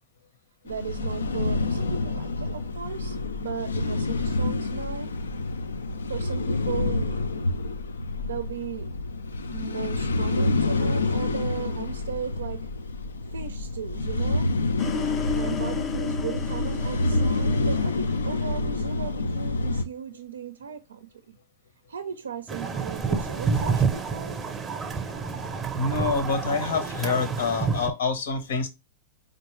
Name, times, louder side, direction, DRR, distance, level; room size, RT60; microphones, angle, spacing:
voice 1, 0.6-5.1 6.1-7.3 8.2-9.0 9.5-12.7 13.3-14.6 15.3-21.3 21.9-24.4, right 7 dB, 80° right, 0.4 m, -36 dB
sound 1, 0.7-19.8, left 2 dB, 85° left, 0.4 m, -28 dB
sound 2, 14.8-18.9, left 6 dB, 20° left, 0.4 m, -33 dB
sound 3, 22.5-27.9, right 5 dB, 20° right, 0.7 m, -28 dB
voice 2, 25.8-28.7, left 4 dB, 70° left, 1.0 m, -26 dB
4.4 x 2.5 x 3.1 m
hypercardioid pair, 105°, 0 cm